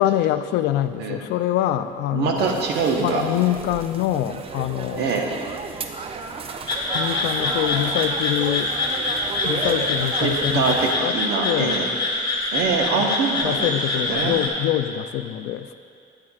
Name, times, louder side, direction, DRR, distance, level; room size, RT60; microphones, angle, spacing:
voice 1, 0.0-2.6 3.0-5.2 6.9-8.7 9.4-11.2 11.4-11.8 13.0-13.1 13.4-15.8, left 13 dB, 85° left, 11 dB, 0.4 m, -25 dB
voice 2, 2.1-3.2 5.0-5.3 10.2-11.8 12.5-14.3, right 5 dB, 80° right, 1 dB, 1.1 m, -24 dB
sound 1, 2.4-10.9, right 4 dB, 35° right, 0.5 m, -33 dB
sound 2, 6.7-14.5, left 2 dB, 25° left, 1.7 m, -25 dB
13.5 x 8.7 x 2.4 m, 2.4 s
cardioid pair, 110°, 17 cm